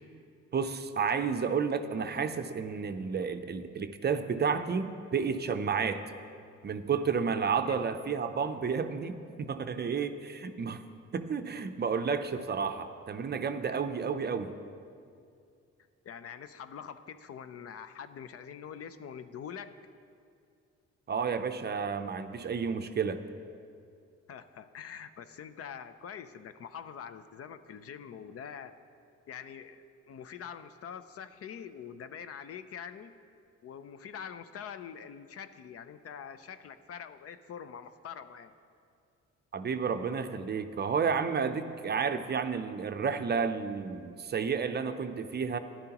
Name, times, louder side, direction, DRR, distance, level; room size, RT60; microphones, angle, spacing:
voice 1, 0.5-6.0 6.6-10.8 11.1-14.5 21.1-23.2 39.5-45.6, right 6 dB, 35° right, 8 dB, 0.5 m, -31 dB
voice 2, 16.0-19.8 24.3-28.8 29.3-33.2 33.6-38.5, left 7 dB, 50° left, 12 dB, 0.5 m, -44 dB
13.5 x 10.5 x 2.9 m, 2.4 s
cardioid pair, 90°, 30 cm